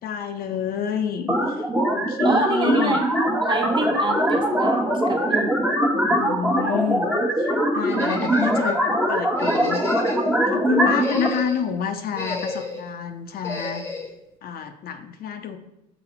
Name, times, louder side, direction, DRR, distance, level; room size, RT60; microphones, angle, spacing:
voice 1, 0.0-3.0 3.8-4.0 6.1-7.1 7.4-8.8 9.1-9.8 10.5-13.9 14.4-15.6, left 7 dB, 65° left, 7 dB, 0.8 m, -28 dB
sound 1, 1.3-11.3, right 1 dB, 5° right, 1.2 m, -22 dB
voice 2, 2.2-3.0 3.4-5.5, right 2 dB, 30° right, 2 dB, 1.3 m, -26 dB
sound 2, 7.9-8.8 9.4-10.3 10.8-11.7 12.1-12.9 13.4-14.1, left 2 dB, 15° left, 1.1 m, -32 dB
6.1 x 4.3 x 5.9 m, 0.85 s
cardioid pair, 110°, 17 cm